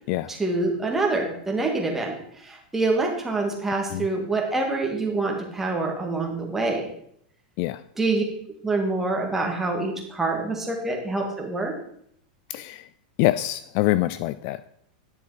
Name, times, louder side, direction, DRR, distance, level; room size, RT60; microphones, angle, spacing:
voice 1, 0.3-6.8 8.0-8.2 8.6-11.7, right 3 dB, 5° right, 0 dB, 1.9 m, -26 dB
voice 2, 12.5-12.9 13.2-14.6, left 16 dB, 40° left, 15 dB, 0.3 m, -25 dB
10.0 x 7.0 x 4.9 m, 0.68 s
supercardioid pair, 155°, 5 cm